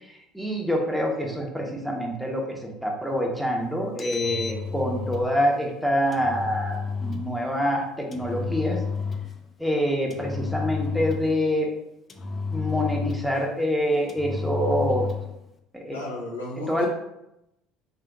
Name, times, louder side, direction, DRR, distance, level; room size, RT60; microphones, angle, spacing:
voice 1, 0.3-8.8 9.6-11.7 12.5-15.1 15.7-16.0 16.7-16.9, equal, 5° right, 0 dB, 1.0 m, -26 dB
Engine, 3.8-5.3 6.1-7.3 8.1-9.4 10.1-11.4 12.1-13.4 14.1-15.3, left 5 dB, 30° left, 0.5 m, -31 dB
voice 2, 15.9-16.9, left 2 dB, 85° left, -4 dB, 0.8 m, -33 dB
3.8 x 2.7 x 3.6 m, 0.83 s
figure-of-eight pair, 60°, 0 cm